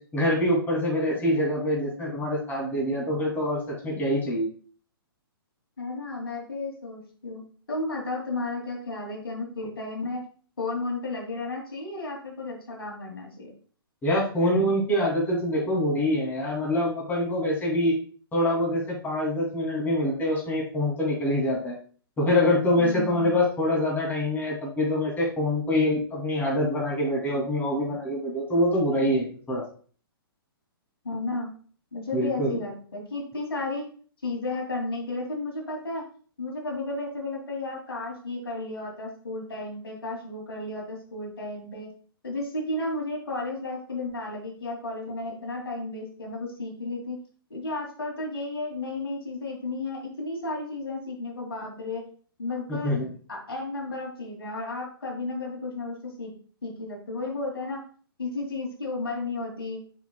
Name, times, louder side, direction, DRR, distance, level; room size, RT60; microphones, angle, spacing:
voice 1, 0.1-4.5 14.0-17.9 18.3-21.7 22.2-29.6 32.1-32.6 52.7-53.1, left 1 dB, 15° left, -3 dB, 2.6 m, -25 dB
voice 2, 5.8-7.4 7.7-10.2 10.6-13.5 22.8-23.3 31.0-31.5 31.9-33.9 34.2-36.0 36.4-41.9 42.2-47.2 47.5-52.0 52.4-52.9 53.3-56.3 56.6-57.8 58.2-59.8, left 2 dB, 75° left, -1 dB, 2.6 m, -33 dB
9.4 x 5.1 x 2.2 m, 0.44 s
figure-of-eight pair, 120°, 13 cm